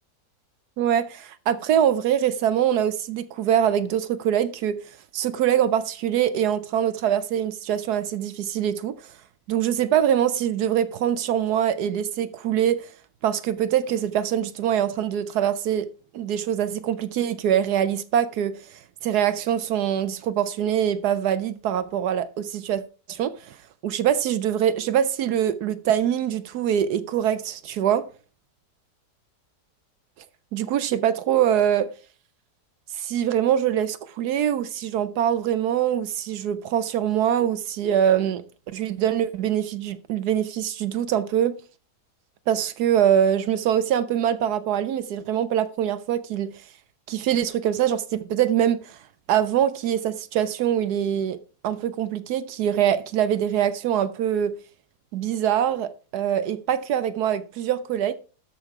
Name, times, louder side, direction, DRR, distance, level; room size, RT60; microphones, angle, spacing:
voice 1, 0.8-4.8 5.1-9.0 9.5-12.9 13.2-15.9 16.1-22.8 23.1-23.5 23.8-28.0 30.5-31.9 32.9-38.4 38.7-41.5 42.5-46.5 47.1-49.0 49.3-51.4 51.6-54.5 55.1-58.1, right 10 dB, 75° right, 1.2 m, -23 dB
13.0 x 5.5 x 4.7 m
omnidirectional pair, 1.7 m